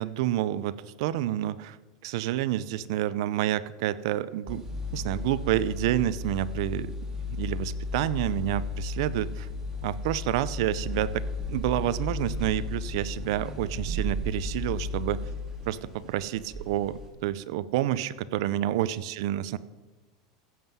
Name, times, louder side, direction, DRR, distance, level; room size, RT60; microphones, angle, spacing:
voice 1, 0.0-4.7 4.9-6.9 7.3-9.5 9.8-11.2 11.5-15.2 15.6-19.6, right 13 dB, 70° right, 17 dB, 0.6 m, -29 dB
sound 1, 4.5-17.1, left 2 dB, 20° right, 2.4 m, -34 dB
15.5 x 7.3 x 5.5 m, 1.3 s
supercardioid pair, 130°, 3 cm